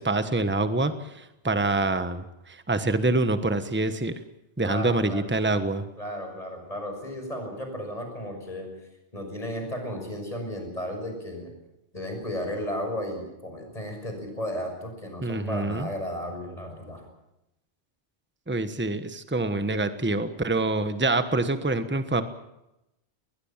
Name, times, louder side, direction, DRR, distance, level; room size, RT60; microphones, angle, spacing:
voice 1, 0.0-4.1 4.6-5.8 15.2-15.9 18.5-22.2, right 2 dB, 10° right, 10 dB, 1.2 m, -26 dB
voice 2, 4.6-5.2 6.0-8.7 9.1-11.5 11.9-17.0, equal, 35° left, 4 dB, 6.4 m, -34 dB
21.0 x 21.0 x 7.4 m, 0.89 s
omnidirectional pair, 1.1 m